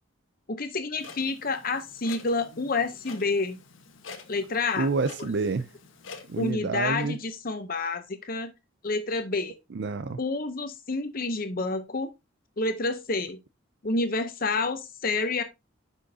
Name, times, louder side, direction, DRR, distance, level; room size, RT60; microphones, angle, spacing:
voice 1, 0.5-3.6 4.3-4.9 6.4-8.5 8.8-9.6 10.2-12.1 12.6-13.4 13.8-15.4, left 3 dB, 45° left, 0.8 m, -29 dB
Clock, 1.0-6.5, left 4 dB, 70° left, 1.4 m, -47 dB
voice 2, 4.8-5.7 6.3-7.2 9.7-10.2, right 4 dB, 55° right, 0.5 m, -28 dB
10.0 x 6.3 x 2.8 m
head